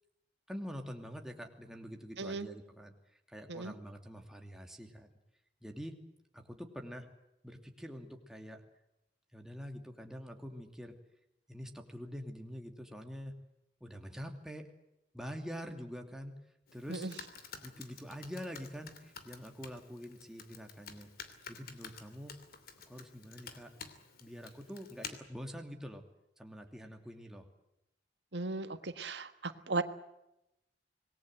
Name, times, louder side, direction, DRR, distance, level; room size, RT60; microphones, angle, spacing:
voice 1, 0.5-2.9 3.3-5.1 5.6-6.0 6.3-7.1 7.4-8.6 9.3-11.0 11.5-13.3 13.8-14.7 15.1-16.4 16.7-17.1 17.6-21.1 21.5-22.4 22.9-23.7 24.2-26.0 26.4-27.5, equal, 5° right, 3 dB, 2.7 m, -45 dB
voice 2, 2.2-2.5 3.5-3.7 16.9-17.1 28.3-29.8, right 3 dB, 90° right, 9 dB, 1.6 m, -36 dB
Computer keyboard, 16.7-25.1, left 6 dB, 60° left, 2.8 m, -51 dB
26.5 x 20.0 x 7.9 m, 0.86 s
head